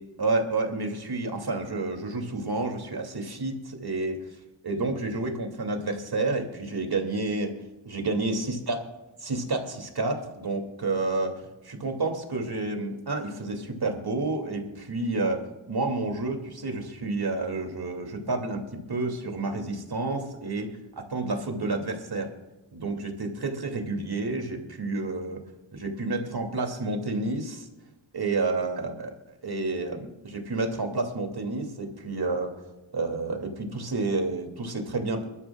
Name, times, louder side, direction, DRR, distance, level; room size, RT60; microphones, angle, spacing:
voice 1, 0.2-4.2 4.6-7.5 7.8-8.8 9.2-22.3 22.7-25.4 25.7-27.7 28.1-29.2 29.4-32.5 32.9-35.2, right 3 dB, 50° right, 3 dB, 2.8 m, -30 dB
23.5 x 12.5 x 2.4 m, 1.1 s
cardioid pair, 60°, 49 cm